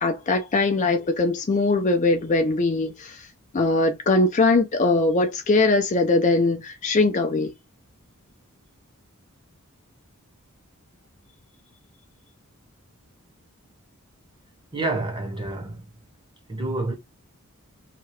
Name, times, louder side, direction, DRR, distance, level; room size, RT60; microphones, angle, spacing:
voice 1, 0.0-3.2 3.5-7.5, left 3 dB, 35° left, 0.4 m, -21 dB
voice 2, 14.7-15.8 16.5-16.9, right 2 dB, 20° right, 0.9 m, -28 dB
2.8 x 2.3 x 3.0 m
head